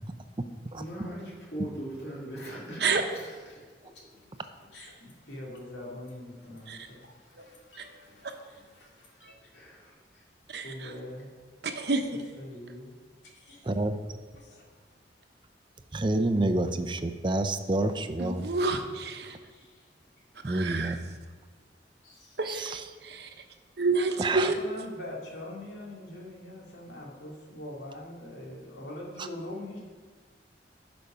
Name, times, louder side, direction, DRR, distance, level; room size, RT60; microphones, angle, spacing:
voice 1, 0.7-3.0 9.5-9.8, right 1 dB, 65° left, -5 dB, 3.2 m, -39 dB
voice 2, 3.1-9.3 10.6-11.3 12.1-13.0 13.3-13.6 14.3-14.7 19.5-19.9 20.2-20.3 22.0-22.4 24.4-29.8, left 1 dB, 90° left, -3 dB, 2.3 m, -44 dB
voice 3, 13.6-14.0 15.9-18.5 20.4-21.0 22.5-22.8 24.2-24.5, right 2 dB, 25° right, 9 dB, 0.5 m, -28 dB
voice 4, 18.2-19.4 20.4-20.9 22.4-22.8 23.0-23.3 23.8-24.5, right 3 dB, 65° right, 5 dB, 0.9 m, -28 dB
11.5 x 5.2 x 5.6 m, 1.5 s
head